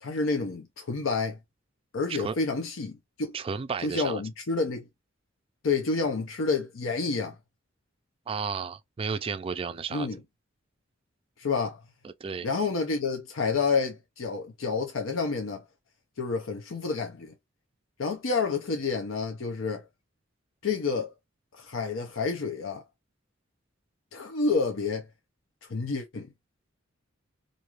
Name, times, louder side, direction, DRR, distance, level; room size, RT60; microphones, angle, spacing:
voice 1, 0.0-1.4 1.9-3.3 3.8-4.8 5.6-7.4 9.9-10.2 11.4-11.8 12.4-15.6 16.2-17.3 18.0-19.9 20.6-21.1 21.5-22.8 24.1-25.0 25.7-26.3, left 4 dB, 90° left, 0.6 m, -29 dB
voice 2, 3.3-4.2 8.3-10.1 12.0-12.5, right 5 dB, 30° right, 0.3 m, -33 dB
2.6 x 2.3 x 2.9 m
head